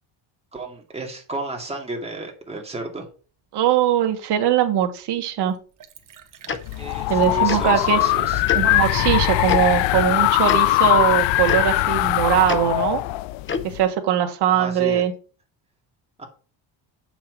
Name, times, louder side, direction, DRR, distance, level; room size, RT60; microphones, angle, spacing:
voice 1, 0.5-3.0 6.8-8.4 14.5-15.0 16.2-16.3, right 2 dB, 15° right, 1 dB, 2.3 m, -32 dB
voice 2, 3.5-5.5 7.1-8.0 8.5-13.0 13.6-15.1, right 10 dB, 65° right, 6 dB, 1.5 m, -21 dB
Liquid, 4.6-4.7 5.2-5.3 5.5-8.7 9.1-9.2, right 8 dB, 45° right, 1.1 m, -40 dB
Tick-tock, 6.5-6.6 7.5-7.6 8.5-8.6 9.5-9.6 10.4-10.6 11.5-11.6 12.5-12.6 13.5-13.7, left 6 dB, 25° left, 0.7 m, -26 dB
sound 1, 6.6-13.8, left 17 dB, 80° left, 0.6 m, -20 dB
7.3 x 6.0 x 4.6 m, 0.37 s
cardioid pair, 130°, 45 cm